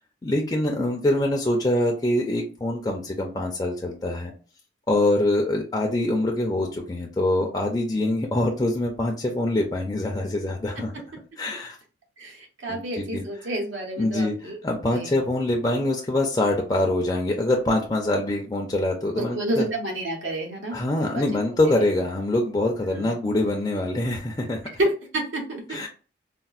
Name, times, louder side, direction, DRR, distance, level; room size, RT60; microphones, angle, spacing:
voice 1, 0.2-4.3 4.9-10.9 11.4-11.8 12.7-13.2 14.0-19.7 20.7-24.6 25.7-25.9, left 1 dB, 20° left, 1 dB, 0.4 m, -24 dB
voice 2, 12.2-14.6 14.9-15.2 19.1-21.2 21.6-21.7 22.9-23.2 24.8-25.9, right 1 dB, 80° right, 1 dB, 1.1 m, -29 dB
4.1 x 2.0 x 2.4 m, 0.37 s
head